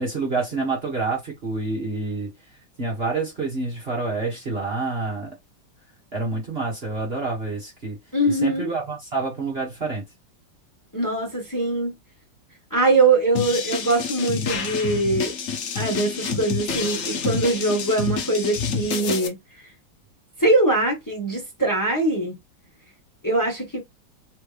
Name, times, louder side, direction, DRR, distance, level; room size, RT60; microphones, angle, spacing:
voice 1, 0.0-2.3 2.8-5.3 6.1-8.0 8.4-10.0, right 3 dB, 35° right, 1.6 m, -27 dB
voice 2, 8.1-8.7 10.9-11.9 12.7-15.3 15.7-19.4 20.4-22.3 23.2-23.8, right 2 dB, 10° left, 1.6 m, -22 dB
sound 1, 13.3-19.3, left 5 dB, 50° left, 0.9 m, -28 dB
3.6 x 3.3 x 3.3 m
omnidirectional pair, 2.0 m